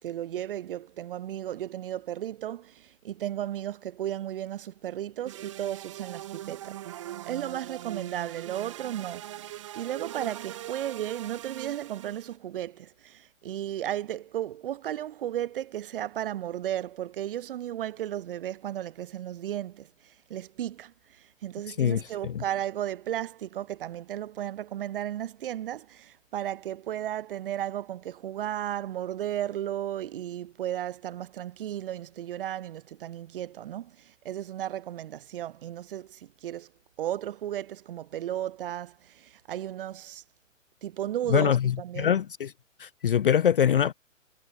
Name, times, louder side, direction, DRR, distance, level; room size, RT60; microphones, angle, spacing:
voice 1, 0.0-36.7 37.0-40.2 40.8-42.2, right 11 dB, 45° right, 3.5 m, -34 dB
sound 1, 5.2-12.4, right 13 dB, 25° right, 0.6 m, -41 dB
voice 2, 21.8-22.4 41.3-42.5 42.8-43.9, left 9 dB, 45° left, 0.5 m, -24 dB
figure-of-eight pair, 130°, 39 cm